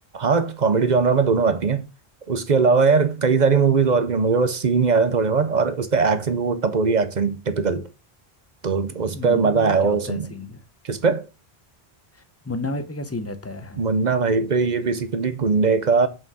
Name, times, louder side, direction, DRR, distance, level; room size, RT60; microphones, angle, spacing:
voice 1, 0.1-1.8 2.3-7.9 8.6-10.3 10.8-11.3 13.8-16.1, right 5 dB, 50° right, 0.8 m, -20 dB
voice 2, 9.1-10.6 12.4-13.8, left 2 dB, 15° left, 0.7 m, -32 dB
6.1 x 4.8 x 6.1 m
omnidirectional pair, 1.1 m